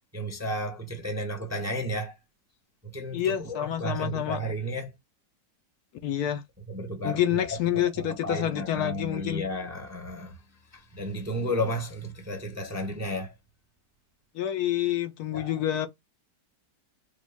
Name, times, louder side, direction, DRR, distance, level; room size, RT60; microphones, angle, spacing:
voice 1, 0.1-2.1 2.8-4.9 6.7-10.4 10.7-13.3 15.3-15.5, equal, 15° right, 0.7 m, -33 dB
voice 2, 3.1-4.4 6.0-6.4 7.0-9.4 14.3-15.9, left 11 dB, 70° left, 1.1 m, -28 dB
5.1 x 2.3 x 3.4 m
omnidirectional pair, 1.8 m